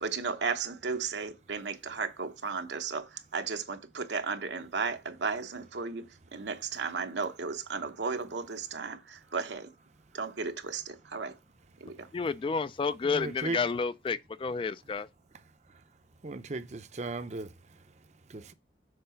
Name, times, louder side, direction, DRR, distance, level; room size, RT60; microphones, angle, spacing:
voice 1, 0.0-6.1 6.3-9.7 10.1-11.4 11.8-12.1, right 5 dB, 85° right, 1.0 m, -34 dB
voice 2, 12.1-15.1, left 5 dB, 30° left, 0.3 m, -30 dB
voice 3, 13.0-13.6 16.2-17.5 18.3-18.5, right 3 dB, 40° right, 0.6 m, -36 dB
6.7 x 3.9 x 5.6 m
head